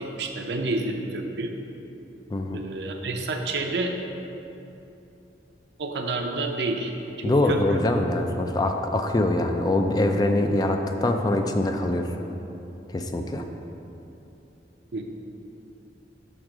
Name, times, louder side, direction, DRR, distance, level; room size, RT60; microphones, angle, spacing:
voice 1, 0.0-1.5 2.5-3.9 5.8-6.9 7.2-7.8 14.9-15.0, right 2 dB, 70° right, 3 dB, 0.6 m, -29 dB
voice 2, 2.3-2.6 7.2-12.1 12.9-13.4, left 1 dB, 20° left, 4 dB, 0.3 m, -23 dB
6.4 x 3.6 x 6.0 m, 2.9 s
head